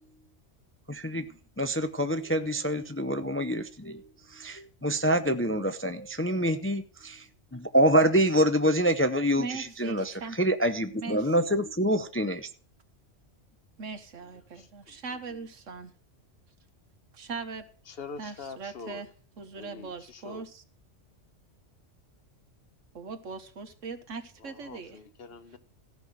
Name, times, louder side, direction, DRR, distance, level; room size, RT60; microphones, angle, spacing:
voice 1, 0.9-1.3 1.6-4.0 4.3-7.2 7.5-12.5, equal, 15° left, 0.4 m, -26 dB
voice 2, 9.4-10.4 11.0-11.3 13.8-15.9 17.1-17.7 18.2-19.1 19.4-20.6 22.9-25.0, right 4 dB, 85° right, 1.6 m, -40 dB
voice 3, 14.6-15.0 17.9-19.0 19.6-20.4 24.4-25.6, left 5 dB, 55° left, 1.0 m, -44 dB
14.5 x 5.8 x 7.7 m
omnidirectional pair, 1.3 m